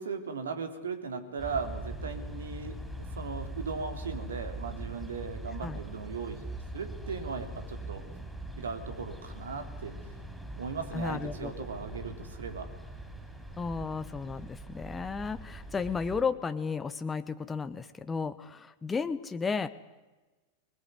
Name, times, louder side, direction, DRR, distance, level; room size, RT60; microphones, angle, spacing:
voice 1, 0.0-6.5 6.7-8.0 8.6-10.0 10.6-12.7, right 5 dB, 65° right, 8 dB, 3.1 m, -38 dB
sound 1, 1.4-16.2, right 1 dB, ahead, 5.6 m, -42 dB
voice 2, 10.9-11.7 13.6-19.7, left 5 dB, 15° left, 10 dB, 1.0 m, -33 dB
23.5 x 21.0 x 9.7 m, 1.2 s
figure-of-eight pair, 90°, 0 cm